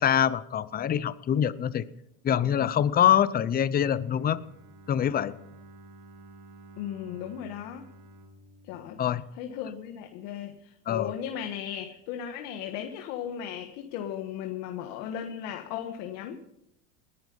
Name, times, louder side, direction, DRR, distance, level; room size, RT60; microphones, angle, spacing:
voice 1, 0.0-1.9 2.2-4.4 4.9-5.4 9.0-9.2 10.9-11.1, left 9 dB, 25° left, 16 dB, 0.6 m, -24 dB
Bowed string instrument, 4.0-10.0, right 1 dB, 65° right, 2.4 m, -52 dB
voice 2, 6.8-7.9 8.6-9.0 9.3-16.4, left 9 dB, 70° left, 5 dB, 1.6 m, -36 dB
20.0 x 11.0 x 5.4 m, 0.81 s
cardioid pair, 135°, 37 cm